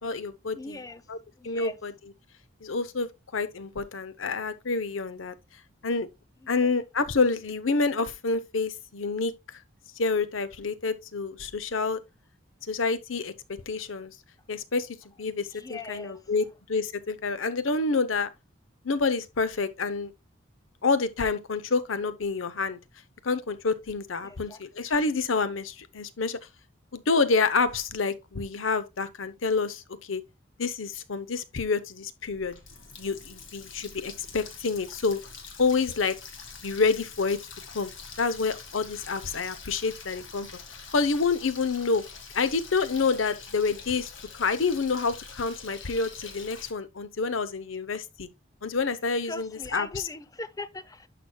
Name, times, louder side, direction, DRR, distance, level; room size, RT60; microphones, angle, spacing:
voice 1, 0.0-0.8 1.1-1.2 1.4-1.9 2.6-5.3 5.8-6.1 6.5-9.3 10.0-12.0 12.7-14.2 14.5-14.9 15.2-18.3 18.8-20.1 20.8-22.8 23.2-26.4 26.9-30.2 30.6-32.6 33.0-35.2 35.6-36.2 36.6-37.4 37.7-37.9 38.2-40.5 40.9-42.0 42.3-48.3 48.6-49.9, left 4 dB, 90° left, 0.8 m, -28 dB
voice 2, 0.5-1.0 1.4-1.8 6.4-6.7 15.5-16.3 24.2-24.6 49.2-51.1, left 2 dB, 20° left, 0.6 m, -40 dB
Water tap faucet, 32.3-46.7, left 5 dB, 75° left, 1.8 m, -45 dB
11.0 x 6.0 x 2.3 m
head